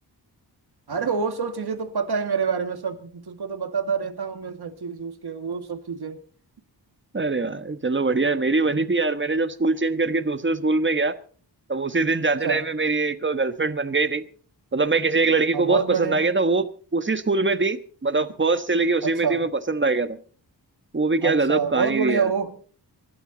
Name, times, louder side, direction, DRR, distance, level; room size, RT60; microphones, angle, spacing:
voice 1, 0.9-6.2 12.4-12.6 15.5-16.2 19.0-19.4 21.2-22.5, right 6 dB, 65° right, 2.0 m, -27 dB
voice 2, 7.1-11.1 11.7-14.2 14.7-20.2 20.9-22.3, right 3 dB, 25° right, 1.3 m, -23 dB
24.5 x 12.0 x 4.0 m
wide cardioid pair, 100°, 42 cm